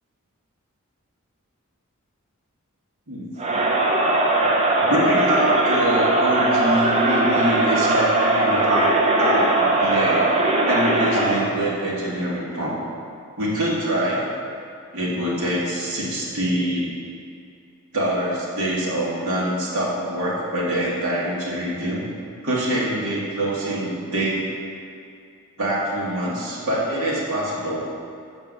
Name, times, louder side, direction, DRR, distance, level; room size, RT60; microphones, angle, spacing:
Crowd, 3.4-11.5, right 2 dB, 30° right, 0.7 m, -20 dB
voice 1, 4.9-10.3 10.6-12.8 13.4-14.2 14.9-16.9 17.9-22.0 22.4-24.4 25.6-27.8, right 1 dB, 70° right, -6 dB, 1.9 m, -24 dB
7.3 x 4.7 x 5.3 m, 2.4 s
head